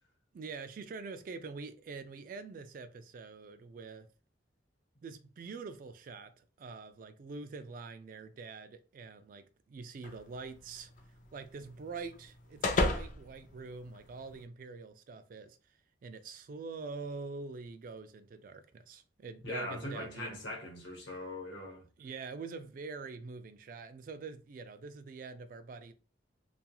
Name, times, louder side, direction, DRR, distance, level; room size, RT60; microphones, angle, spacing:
voice 1, 0.3-4.1 5.0-10.9 11.3-15.6 16.0-20.4 22.0-25.9, right 4 dB, 45° right, 0.3 m, -45 dB
sound 1, 10.0-14.4, left 2 dB, 45° left, 0.4 m, -36 dB
voice 2, 19.4-21.9, left 1 dB, 75° left, 1.0 m, -41 dB
2.3 x 2.3 x 2.9 m
head